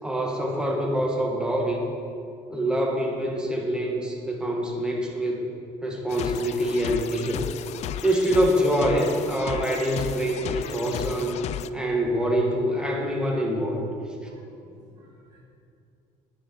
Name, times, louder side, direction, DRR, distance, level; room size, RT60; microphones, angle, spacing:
voice 1, 0.0-1.8 2.5-5.4 5.8-7.4 8.0-11.4 11.7-13.9, equal, 5° right, -1 dB, 2.1 m, -25 dB
sound 1, 6.1-11.7, left 11 dB, 55° left, 0.4 m, -34 dB
voice 2, 14.5-15.4, left 3 dB, 30° right, -6 dB, 2.4 m, -49 dB
10.0 x 9.0 x 6.5 m, 2.5 s
cardioid pair, 115°, 14 cm